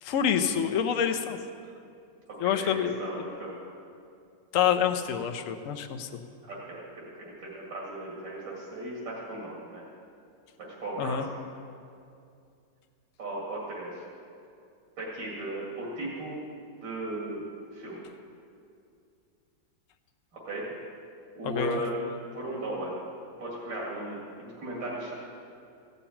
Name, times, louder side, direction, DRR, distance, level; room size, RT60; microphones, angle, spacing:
voice 1, 0.0-1.4 2.4-3.2 4.5-6.1 11.0-11.3 21.4-21.8, left 8 dB, 55° left, 6 dB, 1.0 m, -27 dB
voice 2, 2.4-3.5 6.4-9.8 10.6-11.2 13.2-14.0 15.0-16.4 16.8-17.4 17.7-18.0 20.4-20.7 21.3-21.9 22.3-22.9 23.4-25.1, right 1 dB, 80° right, -5 dB, 3.0 m, -36 dB
15.5 x 6.9 x 8.6 m, 2.4 s
omnidirectional pair, 2.0 m